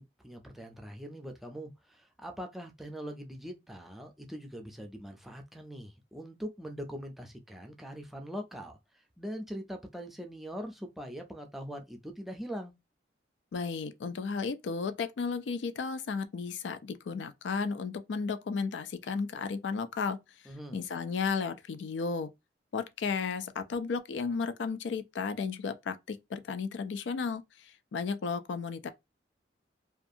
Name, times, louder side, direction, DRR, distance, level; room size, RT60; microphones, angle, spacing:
voice 1, 0.0-8.8 9.2-12.7 20.5-20.8, equal, ahead, 0.4 m, -42 dB
voice 2, 13.5-20.2 20.7-22.3 22.7-28.9, left 5 dB, 90° left, 0.4 m, -34 dB
2.5 x 2.3 x 2.6 m
head